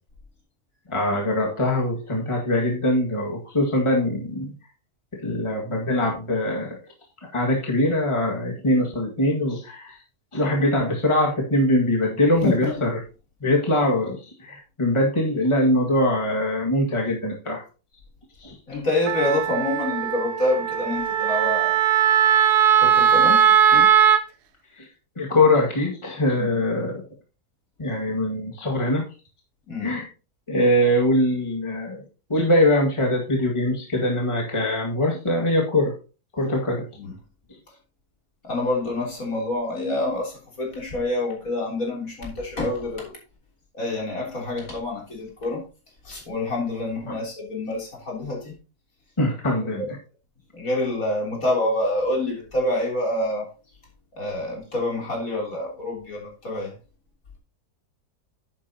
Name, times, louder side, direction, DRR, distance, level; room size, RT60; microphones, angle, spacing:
voice 1, 0.9-4.5 5.2-6.8 7.3-10.0 10.3-13.0 13.4-17.6 18.4-18.6 24.8-24.9 25.2-26.9 27.8-29.0 29.8-30.1 30.5-32.0 32.3-35.9 36.3-36.9 47.0-47.2 49.2-50.0, left 1 dB, 20° left, -1 dB, 1.9 m, -22 dB
voice 2, 12.4-12.9 18.7-21.7 22.8-23.9 26.4-26.6 29.7-30.0 37.0-37.1 38.4-43.1 43.7-45.6 46.0-48.5 49.6-49.9 50.5-53.5 54.2-56.7, left 2 dB, 60° left, -2 dB, 3.8 m, -27 dB
Wind instrument woodwind instrument, 19.1-24.2, right 9 dB, 85° right, 1.3 m, -19 dB
10.5 x 8.9 x 2.8 m, 0.33 s
omnidirectional pair, 1.7 m